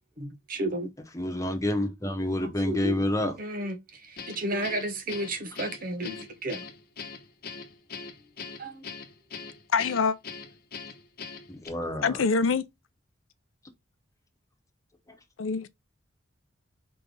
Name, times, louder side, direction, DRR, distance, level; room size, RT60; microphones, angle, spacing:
voice 1, 0.2-0.9 2.4-3.0 3.4-6.7 8.6-8.8, right 1 dB, 45° right, 1.1 m, -33 dB
voice 2, 1.1-3.3 11.5-12.2, left 1 dB, 15° left, 1.3 m, -28 dB
Guitar, 4.2-11.7, left 5 dB, 50° left, 1.0 m, -41 dB
voice 3, 9.7-10.2 12.0-12.6 15.4-15.7, left 5 dB, 85° left, 0.6 m, -24 dB
5.2 x 3.4 x 5.3 m
head